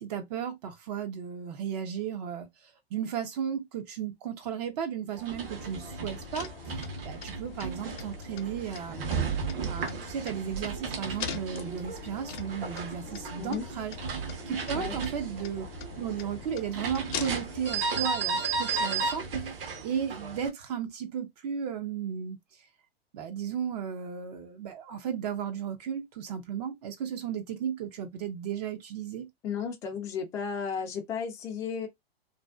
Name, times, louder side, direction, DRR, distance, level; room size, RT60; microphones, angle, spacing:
voice 1, 0.0-9.2 9.7-14.0 14.5-15.7 16.0-22.7 23.1-29.3, right 8 dB, 40° right, 0.5 m, -35 dB
sound 1, 5.2-20.5, right 5 dB, 65° right, 0.9 m, -35 dB
sound 2, 5.4-17.7, left 7 dB, 50° left, 0.6 m, -43 dB
voice 2, 29.4-31.9, left 6 dB, 10° left, 0.3 m, -34 dB
2.5 x 2.3 x 2.2 m
hypercardioid pair, 110°, 31 cm